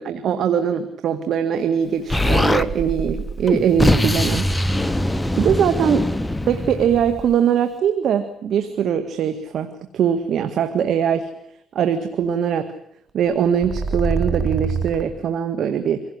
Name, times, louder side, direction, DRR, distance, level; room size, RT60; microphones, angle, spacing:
voice 1, 0.0-4.5 5.4-6.1 6.5-11.3 11.8-12.7 13.1-16.0, right 8 dB, 70° right, 9 dB, 1.9 m, -21 dB
Explosion, 2.1-2.7 3.5-7.3, left 1 dB, 10° left, 1.1 m, -21 dB
sound 1, 2.6-3.8 5.5-6.4 13.3-15.0, right 4 dB, 40° right, 3.4 m, -26 dB
25.5 x 17.0 x 9.7 m, 0.70 s
cardioid pair, 90°, 0 cm